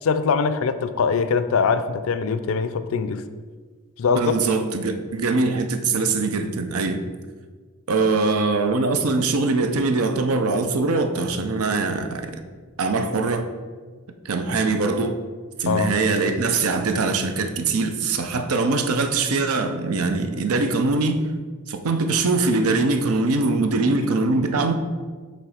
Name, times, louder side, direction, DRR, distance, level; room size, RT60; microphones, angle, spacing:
voice 1, 0.0-3.2 4.0-4.3 15.7-15.9, left 5 dB, 65° left, 0.4 m, -22 dB
voice 2, 4.1-7.0 7.9-12.4 12.8-13.5 14.2-15.2 15.6-21.2 21.7-24.7, right 3 dB, 80° right, 0.6 m, -22 dB
7.7 x 3.1 x 4.9 m
head